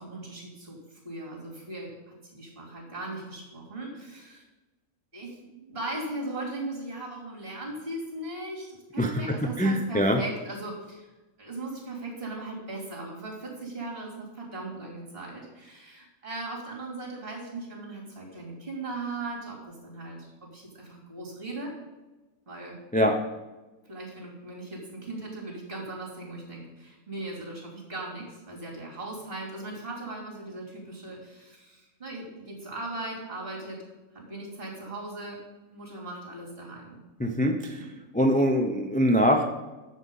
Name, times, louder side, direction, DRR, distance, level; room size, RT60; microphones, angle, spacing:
voice 1, 0.0-4.4 5.1-11.1 11.4-21.7 22.5-22.8 23.9-33.8 34.1-35.4 35.7-37.0 37.7-37.9, right 2 dB, 40° right, -2 dB, 3.4 m, -38 dB
voice 2, 9.0-10.2 22.9-23.2 37.2-37.9 38.1-39.4, equal, 10° left, 3 dB, 0.4 m, -23 dB
10.0 x 7.4 x 5.5 m, 1.1 s
omnidirectional pair, 1.6 m